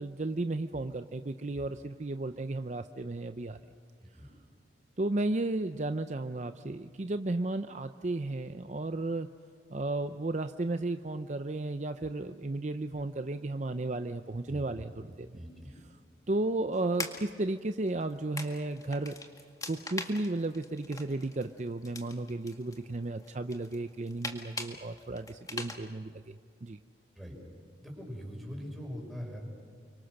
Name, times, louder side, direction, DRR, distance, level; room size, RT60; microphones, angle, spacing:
voice 1, 0.0-3.6 5.0-9.3 9.7-15.3 16.3-19.2 19.7-26.4 26.6-26.8, right 2 dB, 40° right, 9 dB, 0.6 m, -34 dB
voice 2, 15.3-15.7 27.2-27.3 27.8-29.4, equal, ahead, -1 dB, 5.8 m, -42 dB
sound 1, 16.7-25.8, left 3 dB, 20° left, 1.9 m, -44 dB
30.0 x 24.5 x 6.5 m, 2.3 s
head